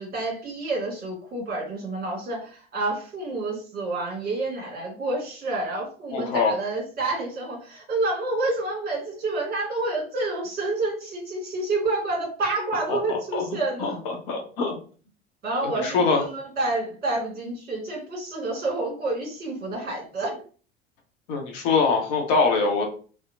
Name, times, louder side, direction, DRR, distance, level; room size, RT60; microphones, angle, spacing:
voice 1, 0.0-14.0 15.4-20.4, right 2 dB, 30° right, -1 dB, 1.4 m, -29 dB
voice 2, 6.1-6.5 12.9-13.4 13.8-14.7 15.6-16.2 21.3-22.8, left 4 dB, 60° left, 2 dB, 0.8 m, -24 dB
2.8 x 2.1 x 2.4 m, 0.40 s
figure-of-eight pair, 75°, 31 cm